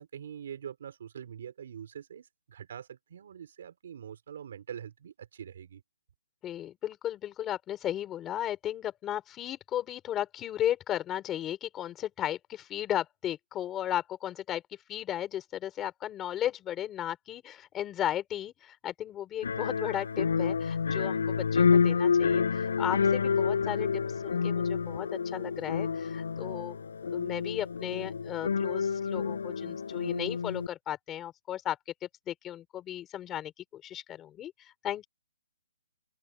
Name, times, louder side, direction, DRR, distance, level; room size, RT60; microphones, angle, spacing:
voice 1, 0.0-5.8, right 8 dB, 40° right, 5.5 m, -44 dB
voice 2, 6.4-14.6 14.9-26.8 27.1-35.1, left 11 dB, 10° left, 4.1 m, -35 dB
sound 1, 19.4-30.7, left 6 dB, 60° left, 5.9 m, -28 dB
open air
hypercardioid pair, 175°, 0 cm